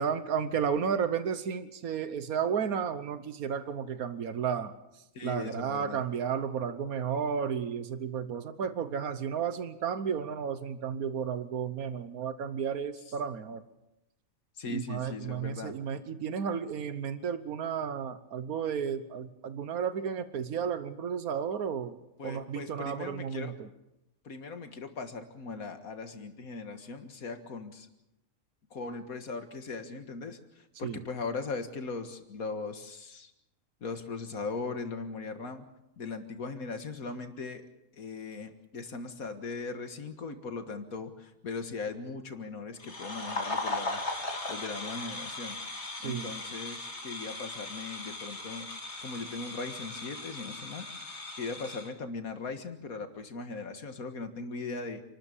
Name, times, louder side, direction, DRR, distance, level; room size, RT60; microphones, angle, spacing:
voice 1, 0.0-4.7 5.2-13.6 14.7-22.0 22.2-23.7 30.8-31.0 46.0-46.3, right 7 dB, 90° right, 12 dB, 1.5 m, -33 dB
voice 2, 5.1-6.0 14.6-15.7 22.2-23.6 24.2-27.9 28.7-33.3 33.8-35.7 36.0-37.7 37.9-44.0 44.5-45.6 46.0-48.7 49.0-55.0, left 4 dB, 85° left, 7 dB, 2.1 m, -39 dB
sound 1, 42.8-51.9, left 2 dB, 50° left, 3.1 m, -38 dB
28.5 x 13.0 x 8.4 m, 0.91 s
omnidirectional pair, 1.5 m